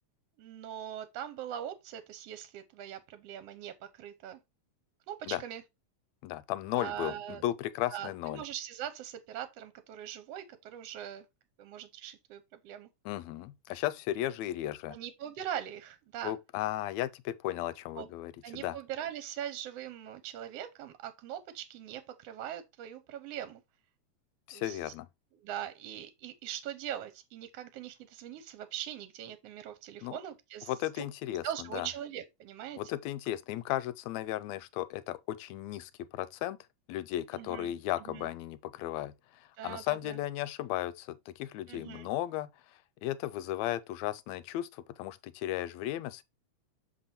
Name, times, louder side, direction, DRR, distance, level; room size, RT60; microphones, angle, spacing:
voice 1, 0.4-4.4 5.1-5.6 6.7-7.4 7.9-11.3 11.6-12.9 14.9-16.3 18.0-18.1 18.4-23.6 24.5-24.8 25.4-31.1 31.4-32.8 37.3-37.7 38.1-38.3 39.6-40.2 41.7-42.1, right 10 dB, 70° right, 1.6 m, -41 dB
voice 2, 6.2-8.4 13.1-15.0 16.2-18.8 24.5-25.1 30.0-30.2 30.7-31.5 31.7-31.9 32.8-36.6 36.9-42.5 43.0-46.2, left 14 dB, 80° left, 1.7 m, -35 dB
6.7 x 3.7 x 4.2 m
omnidirectional pair, 3.3 m